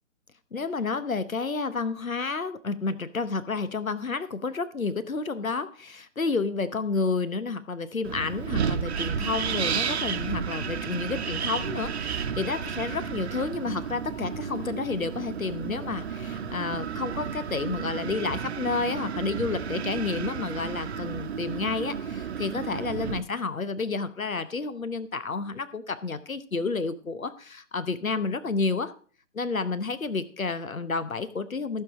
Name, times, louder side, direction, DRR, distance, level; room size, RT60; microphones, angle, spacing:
voice 1, 0.5-28.9 29.3-31.8, left 4 dB, 90° left, 14 dB, 1.0 m, -30 dB
Wind, 8.0-23.2, right 7 dB, 50° right, 1.0 m, -32 dB
15.0 x 6.9 x 5.0 m, 0.42 s
figure-of-eight pair, 130°, 40 cm